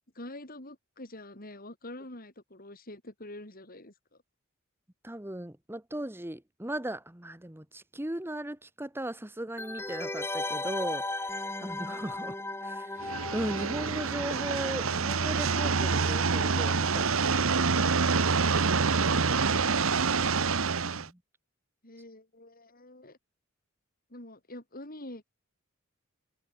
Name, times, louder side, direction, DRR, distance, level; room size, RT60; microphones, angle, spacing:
voice 1, 0.2-4.2 21.8-23.2 24.1-25.3, left 1 dB, 45° left, 7.0 m, -46 dB
voice 2, 5.0-12.3 12.6-18.0 21.0-21.2, right 1 dB, 10° right, 1.4 m, -38 dB
sound 1, 9.6-15.1 15.3-15.4, left 2 dB, 10° left, 2.5 m, -36 dB
sound 2, 13.0-21.1, right 5 dB, 85° right, 1.2 m, -27 dB
head